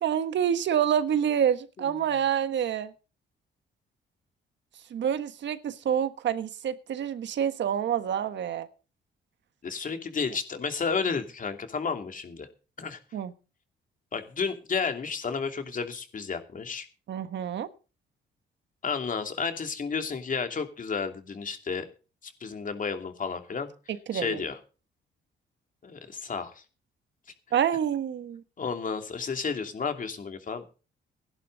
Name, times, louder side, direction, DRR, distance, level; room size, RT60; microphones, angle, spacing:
voice 1, 0.0-2.9 4.9-8.7 13.1-13.3 17.1-17.7 23.9-24.4 27.5-28.4, right 9 dB, 65° right, 11 dB, 1.4 m, -27 dB
voice 2, 9.6-12.5 12.8-13.0 14.1-16.9 18.8-21.8 22.2-23.7 24.1-24.6 25.8-26.5 28.6-30.8, left 5 dB, 40° left, 6 dB, 2.8 m, -32 dB
17.0 x 11.0 x 4.0 m, 0.34 s
cardioid pair, 90°, 20 cm